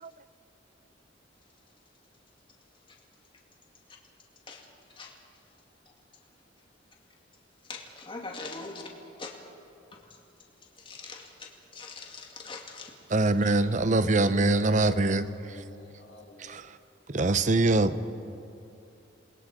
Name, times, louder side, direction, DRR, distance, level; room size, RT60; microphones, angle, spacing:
voice 1, 7.6-8.8 9.2-9.4 9.9-10.0 10.8-12.9 13.4-13.6, left 3 dB, 25° left, 0 dB, 2.3 m, -42 dB
voice 2, 13.1-15.6 16.4-16.8 17.1-18.0, right 2 dB, 40° right, 13 dB, 0.8 m, -24 dB
voice 3, 14.4-16.6, left 1 dB, 75° left, -2 dB, 3.7 m, -53 dB
28.0 x 20.5 x 4.9 m, 2.6 s
head